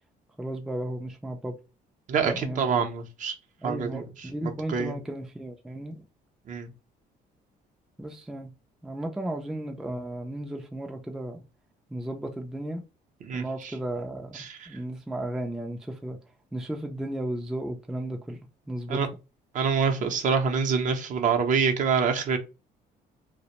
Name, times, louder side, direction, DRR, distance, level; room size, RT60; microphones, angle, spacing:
voice 1, 0.4-1.6 2.2-2.9 3.6-6.1 8.0-8.5 8.8-11.4 11.9-12.8 13.3-14.4 14.7-16.2 16.5-19.0, right 1 dB, 5° right, 0.3 m, -34 dB
voice 2, 2.1-3.3 3.6-4.0 4.4-4.9 6.5-6.7 13.2-13.4 14.4-14.5 18.9-19.1 19.5-22.4, right 6 dB, 50° right, 0.6 m, -26 dB
2.4 x 2.0 x 2.8 m
cardioid pair, 110°, 17 cm